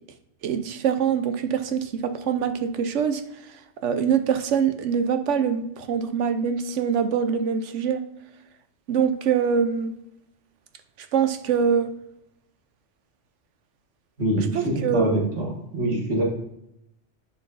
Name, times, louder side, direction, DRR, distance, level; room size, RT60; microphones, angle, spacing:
voice 1, 0.4-3.2 3.8-8.0 8.9-9.9 11.1-11.9 14.5-15.2, right 7 dB, 80° right, 9 dB, 1.0 m, -24 dB
voice 2, 14.2-16.2, right 1 dB, 65° right, -1 dB, 2.1 m, -25 dB
10.5 x 5.7 x 2.6 m, 0.80 s
omnidirectional pair, 1.2 m